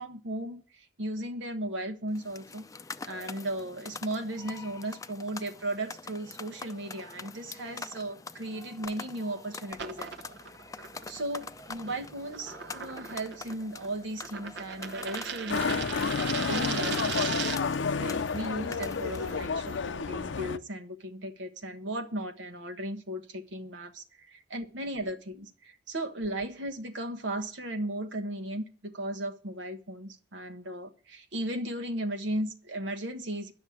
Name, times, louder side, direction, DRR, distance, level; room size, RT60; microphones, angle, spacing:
voice 1, 0.0-2.6 3.0-10.4 11.1-17.4 18.0-33.5, right 1 dB, 90° right, 1.3 m, -36 dB
sound 1, 2.1-19.4, left 4 dB, 20° left, 0.5 m, -45 dB
sound 2, 9.7-17.8, right 7 dB, 65° right, 0.9 m, -39 dB
Motorcycle, 15.5-20.6, left 5 dB, 85° left, 0.6 m, -30 dB
10.5 x 6.3 x 8.4 m
head